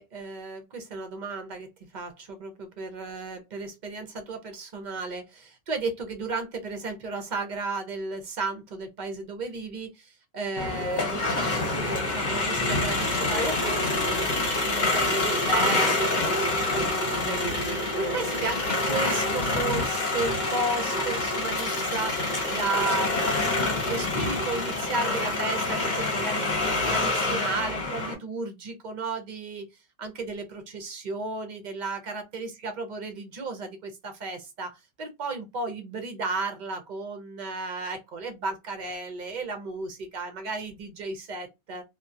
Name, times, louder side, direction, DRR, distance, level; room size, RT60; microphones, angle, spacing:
voice 1, 0.0-1.7 1.9-26.5 26.9-29.6 30.0-41.8, right 3 dB, 50° right, 0.8 m, -34 dB
sound 1, 10.6-28.1, left 2 dB, 45° left, 0.9 m, -26 dB
2.8 x 2.2 x 2.3 m
omnidirectional pair, 1.1 m